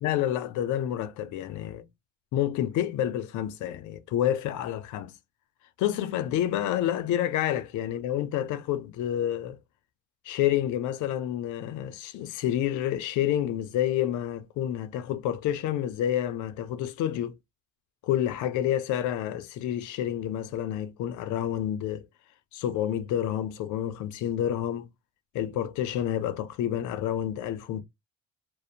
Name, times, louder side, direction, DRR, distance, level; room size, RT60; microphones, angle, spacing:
voice 1, 0.0-1.8 2.3-5.1 5.8-9.6 10.2-17.4 18.0-22.1 22.5-24.9 25.3-27.8, left 11 dB, 85° left, 0.5 m, -29 dB
2.4 x 2.1 x 2.6 m
cardioid pair, 115°, 29 cm